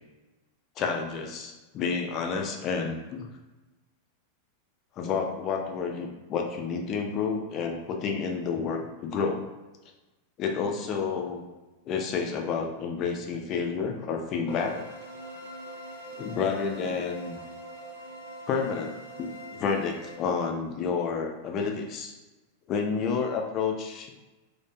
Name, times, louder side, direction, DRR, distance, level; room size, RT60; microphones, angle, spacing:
voice 1, 0.8-3.3 5.0-9.4 10.4-11.4 11.9-14.9 16.1-17.4 18.5-18.9 19.2-22.1 22.7-24.1, left 5 dB, 35° left, 2 dB, 0.4 m, -30 dB
sound 1, 14.5-20.2, right 1 dB, 65° left, 0.7 m, -43 dB
2.4 x 2.1 x 2.6 m, 1.1 s
figure-of-eight pair, 90°, 0 cm